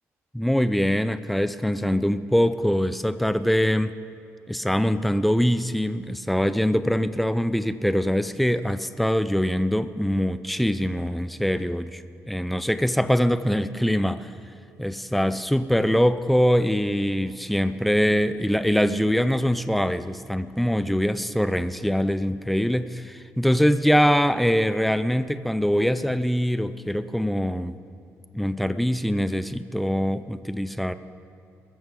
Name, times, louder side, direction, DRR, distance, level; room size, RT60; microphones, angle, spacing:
voice 1, 0.3-3.9 4.5-14.3 14.8-27.8 28.3-30.9, equal, ahead, 12 dB, 0.4 m, -23 dB
22.0 x 14.0 x 3.8 m, 2.4 s
cardioid pair, 135°, 5 cm